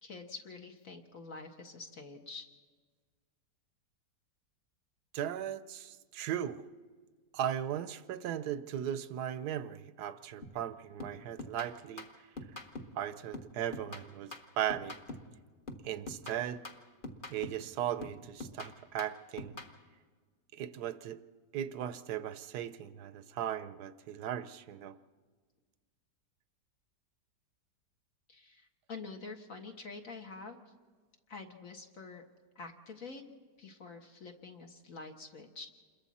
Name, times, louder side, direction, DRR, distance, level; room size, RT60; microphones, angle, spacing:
voice 1, 0.0-2.5 28.3-30.7 31.3-32.2 32.6-33.2 33.6-35.7, left 4 dB, 50° left, 3 dB, 1.8 m, -47 dB
voice 2, 5.1-6.6 7.3-12.1 12.9-15.0 15.8-16.6 17.3-19.6 20.5-21.2 21.5-25.0, right 10 dB, 70° right, 13 dB, 1.2 m, -37 dB
sound 1, 10.4-10.7 11.0-13.0 13.3-15.4 15.7-17.7 18.0-19.8, left 2 dB, 30° left, 1.4 m, -45 dB
28.0 x 22.0 x 4.2 m, 1.5 s
omnidirectional pair, 1.9 m